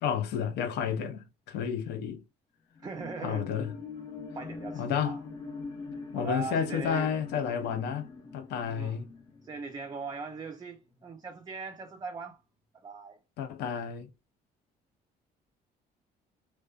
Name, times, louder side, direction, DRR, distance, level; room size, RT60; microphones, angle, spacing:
voice 1, 0.0-2.2 3.2-3.7 4.8-5.2 6.1-9.1 13.4-14.1, left 7 dB, 80° left, 0.5 m, -31 dB
sound 1, 2.7-10.5 11.0-11.1, left 4 dB, 20° left, 0.7 m, -43 dB
voice 2, 2.8-3.5 4.3-5.2 6.1-7.1 8.7-9.0 9.4-12.4 12.8-13.2, right 4 dB, 25° right, 0.4 m, -40 dB
2.4 x 2.2 x 2.3 m
cardioid pair, 110°, 17 cm